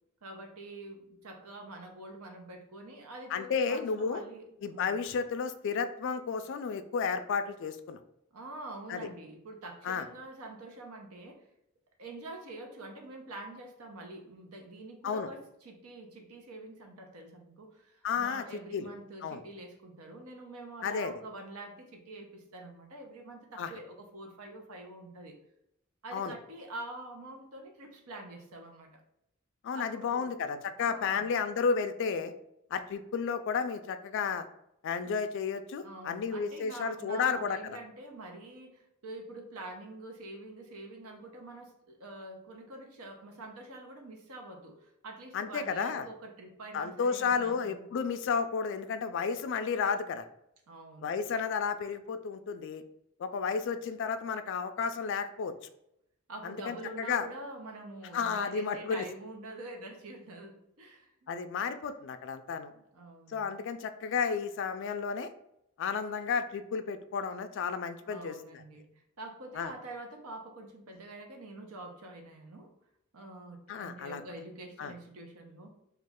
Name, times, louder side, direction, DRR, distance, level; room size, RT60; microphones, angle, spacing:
voice 1, 0.2-5.0 8.3-11.5 12.0-25.4 26.0-29.0 29.7-30.3 30.8-31.3 35.8-47.9 50.7-51.1 56.3-61.3 62.7-63.5 68.1-72.7 73.1-75.7, right 2 dB, 85° right, 3 dB, 0.7 m, -46 dB
voice 2, 3.3-4.2 4.6-8.0 8.9-9.0 9.8-10.0 15.0-15.3 18.0-18.4 18.7-18.9 19.2-19.4 20.8-21.1 23.6-23.7 26.1-26.3 29.6-32.3 32.7-34.4 34.8-37.6 45.3-46.1 46.7-50.2 51.0-52.8 53.2-55.5 56.4-57.3 58.1-59.0 61.3-62.7 63.3-65.3 65.8-68.6 69.6-69.7 73.7-74.2 74.8-74.9, left 6 dB, 55° left, 10 dB, 0.3 m, -32 dB
3.0 x 2.4 x 3.5 m, 0.79 s
head